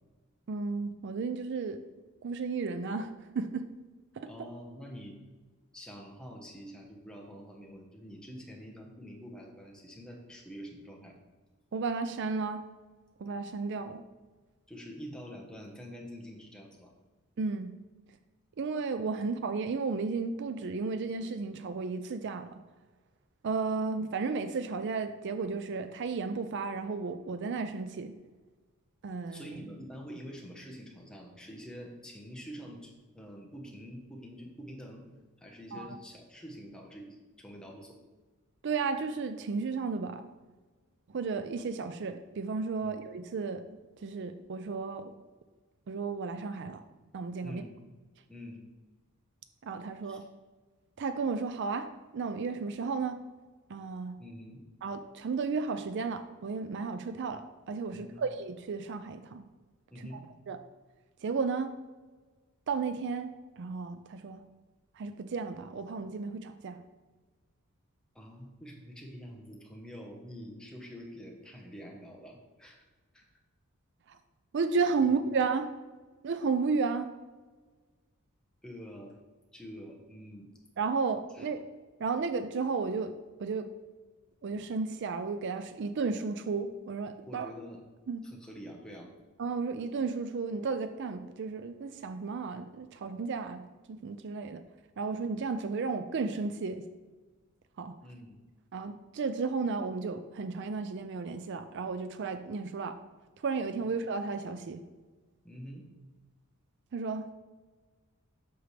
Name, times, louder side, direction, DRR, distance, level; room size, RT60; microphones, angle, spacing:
voice 1, 0.5-1.8 2.2-3.7 4.2-4.3 11.7-12.6 13.2-14.0 17.4-17.7 18.6-22.6 23.4-28.1 29.0-29.6 35.7-36.0 38.6-40.2 41.1-45.1 45.9-46.8 47.1-47.6 49.6-50.2 51.0-53.2 53.7-54.2 54.8-59.4 60.0-60.2 60.5-60.6 61.2-61.7 62.7-63.3 63.6-64.4 64.9-66.8 74.1-74.2 74.5-75.7 76.2-77.1 80.8-81.7 82.0-83.1 83.4-83.7 84.4-87.5 88.1-88.2 89.4-94.6 95.0-96.9 97.8-97.9 98.7-103.0 103.4-104.8 106.9-107.3, right 4 dB, 55° right, 9 dB, 0.4 m, -33 dB
voice 2, 4.3-5.1 5.7-11.2 14.7-16.9 29.3-35.1 35.4-38.0 42.8-43.0 47.4-47.7 48.3-48.6 50.1-50.2 54.2-54.6 57.9-58.2 59.9-60.2 68.1-72.8 73.1-73.3 75.0-75.2 78.6-79.1 79.5-80.5 81.3-81.5 87.3-87.8 88.2-89.1 98.0-98.4 105.4-105.9, equal, 5° left, -1 dB, 1.0 m, -46 dB
7.9 x 6.3 x 3.3 m, 1.3 s
head